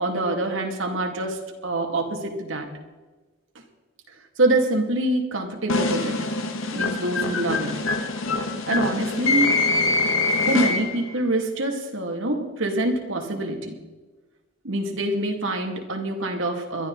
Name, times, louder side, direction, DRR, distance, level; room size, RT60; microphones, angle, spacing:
voice 1, 0.0-2.7 4.4-6.3 6.7-8.1 8.7-9.5 10.5-13.8 14.6-16.9, right 2 dB, 75° right, 2 dB, 2.4 m, -25 dB
sound 1, 5.7-11.1, left 3 dB, 85° left, 1.6 m, -24 dB
22.0 x 12.5 x 4.0 m, 1.2 s
head